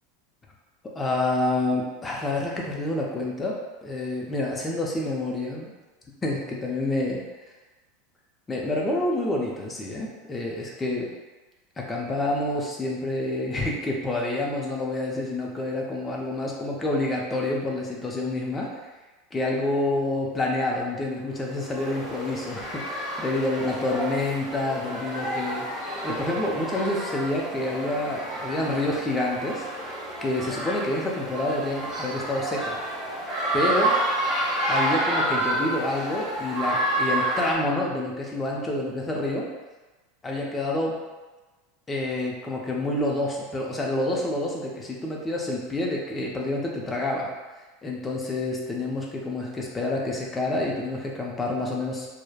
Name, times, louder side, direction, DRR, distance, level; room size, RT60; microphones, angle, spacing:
voice 1, 0.9-5.7 6.2-7.2 8.5-11.1 11.8-18.7 19.3-29.7 30.2-32.8 33.5-34.0 34.7-39.5 40.2-41.0 41.9-47.3 47.8-52.1, left 2 dB, 15° left, -2 dB, 0.5 m, -28 dB
sound 1, 21.5-37.5, right 1 dB, ahead, 1.1 m, -29 dB
3.2 x 2.0 x 2.2 m, 1.2 s
supercardioid pair, 135°, 0 cm